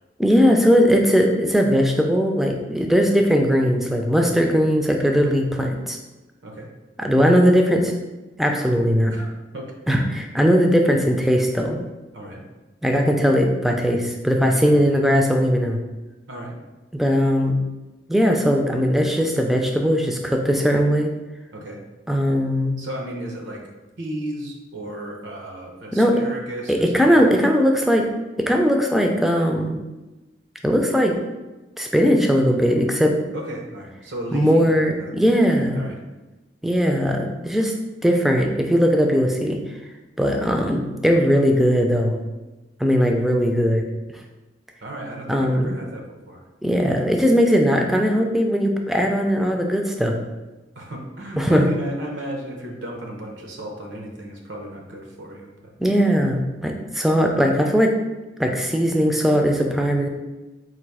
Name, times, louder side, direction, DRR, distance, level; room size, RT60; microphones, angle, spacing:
voice 1, 0.2-6.0 7.0-7.9 8.4-9.1 9.9-11.8 12.8-15.8 16.9-17.6 18.1-21.1 22.1-22.8 25.9-26.2 26.7-28.1 28.4-29.8 30.6-31.2 31.8-33.2 34.3-35.9 36.6-37.7 38.0-39.6 40.2-42.2 42.8-43.9 45.3-45.7 46.6-50.2 51.4-51.7 55.8-57.9 58.4-60.1, equal, ahead, 2 dB, 0.4 m, -19 dB
voice 2, 12.1-12.4 14.6-14.9 16.3-16.6 21.5-21.8 22.8-23.6 24.0-27.3 33.3-35.2 35.5-36.0 44.8-46.4 50.7-55.7, right 1 dB, 85° right, 1 dB, 0.9 m, -34 dB
4.0 x 2.6 x 4.7 m, 1.1 s
head